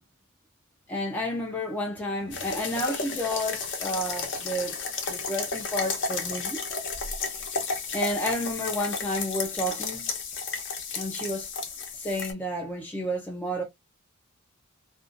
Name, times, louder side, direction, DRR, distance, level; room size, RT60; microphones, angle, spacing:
voice 1, 0.9-6.7 7.9-10.1 11.0-11.5 12.0-13.6, equal, 10° left, 0.4 m, -31 dB
sound 1, 2.3-12.3, left 4 dB, 55° left, 0.7 m, -33 dB
2.5 x 2.2 x 2.4 m
head